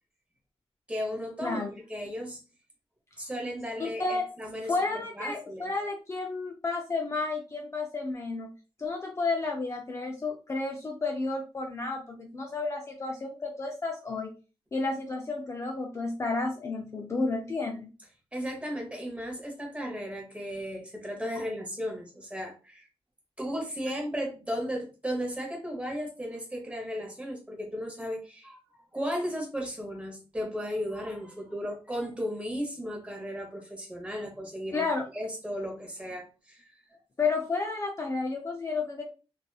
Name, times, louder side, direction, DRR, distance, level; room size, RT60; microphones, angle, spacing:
voice 1, 0.9-1.6 1.9-2.4 3.2-4.7 5.2-5.7 18.3-22.9 23.4-34.9 35.1-36.7, equal, 10° right, 0 dB, 0.9 m, -35 dB
voice 2, 1.4-1.7 3.8-4.3 4.6-8.5 8.8-14.3 14.7-17.9 21.4-21.5 34.7-35.1 37.2-39.0, left 3 dB, 25° left, 1 dB, 0.3 m, -31 dB
2.8 x 2.3 x 2.2 m, 0.33 s
wide cardioid pair, 170°, 11 cm